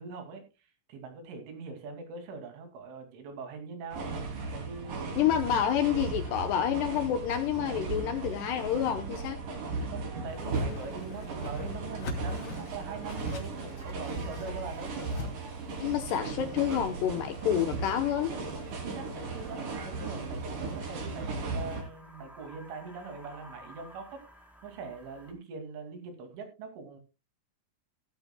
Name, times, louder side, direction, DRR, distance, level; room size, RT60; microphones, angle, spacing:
voice 1, 0.0-4.1 4.5-5.2 9.9-14.9 18.8-24.2 24.6-27.0, right 4 dB, 75° right, 4.8 m, -42 dB
sound 1, 3.9-21.8, right 3 dB, 45° right, 4.0 m, -36 dB
voice 2, 5.2-9.4 10.7-10.8 15.8-18.3, left 10 dB, 75° left, 2.5 m, -28 dB
Whoosh swoosh swish, 10.3-15.3, left 2 dB, 35° left, 2.4 m, -43 dB
sound 2, 12.1-25.3, equal, ahead, 2.7 m, -56 dB
15.5 x 13.5 x 2.2 m
omnidirectional pair, 5.6 m